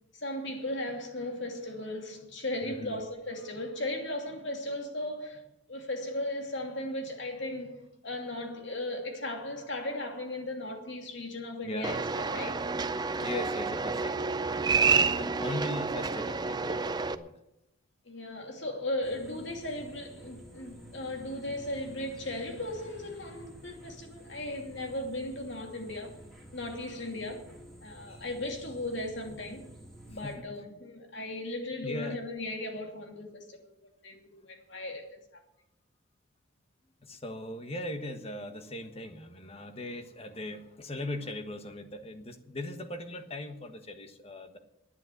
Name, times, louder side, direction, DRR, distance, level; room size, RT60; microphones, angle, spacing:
voice 1, 0.1-12.6 13.2-13.4 18.1-26.2 26.5-27.5 27.8-29.7 30.1-33.8 34.0-35.2, left 1 dB, 60° left, 2.8 m, -37 dB
voice 2, 2.6-3.0 11.6-11.9 13.2-17.3 28.1-28.2 30.2-30.4 31.8-32.2 37.0-44.6, left 1 dB, 30° left, 1.3 m, -39 dB
sound 1, 11.8-17.1, right 4 dB, 20° right, 0.4 m, -29 dB
sound 2, 19.0-30.4, equal, ahead, 3.0 m, -51 dB
11.0 x 9.2 x 9.2 m
head